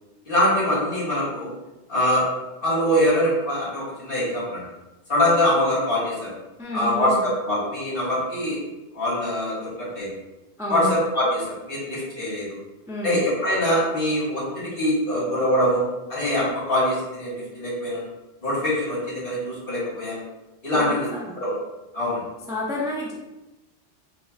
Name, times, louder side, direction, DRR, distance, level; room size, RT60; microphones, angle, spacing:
voice 1, 0.3-1.5 1.9-2.2 2.6-4.6 5.1-6.3 6.7-8.6 8.9-10.1 10.7-12.6 13.0-15.8 16.1-18.0 18.4-20.2 20.6-21.1 21.4-21.6 21.9-22.2, left 1 dB, 50° left, -9 dB, 1.9 m, -23 dB
voice 2, 6.6-7.3 10.6-11.0 12.9-13.2 20.7-21.4 22.5-23.1, left 1 dB, 5° right, -4 dB, 0.3 m, -30 dB
4.4 x 3.1 x 2.8 m, 1.0 s
omnidirectional pair, 1.2 m